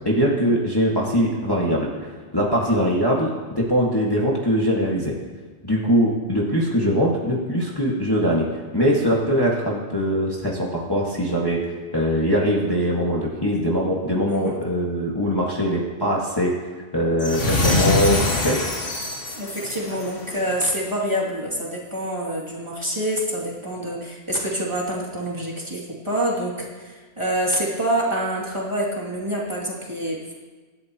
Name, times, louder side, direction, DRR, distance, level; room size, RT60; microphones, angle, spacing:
voice 1, 0.1-5.1 5.6-8.5 8.7-11.6 11.9-16.5 16.9-18.6, equal, 20° left, -5 dB, 1.9 m, -22 dB
voice 2, 14.3-14.6 19.3-30.3, right 1 dB, 25° right, -5 dB, 2.8 m, -26 dB
sound 1, 17.2-20.5, left 2 dB, 50° left, 1.9 m, -24 dB
25.0 x 11.5 x 3.0 m, 1.4 s
omnidirectional pair, 1.3 m